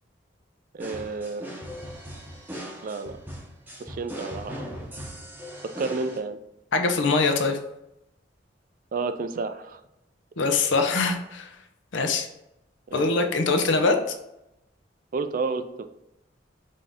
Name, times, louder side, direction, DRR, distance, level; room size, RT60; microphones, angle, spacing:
voice 1, 0.7-1.4 2.8-3.2 3.8-4.9 5.8-6.4 8.9-9.8 10.4-10.5 12.9-13.3 15.1-15.9, right 4 dB, 45° right, 10 dB, 0.4 m, -31 dB
sound 1, 0.8-6.2, equal, 10° right, 0.7 m, -39 dB
voice 2, 6.7-7.6 10.4-11.5 11.9-12.3 12.9-14.0, left 3 dB, 85° left, 5 dB, 0.7 m, -23 dB
5.2 x 2.7 x 3.5 m, 0.86 s
head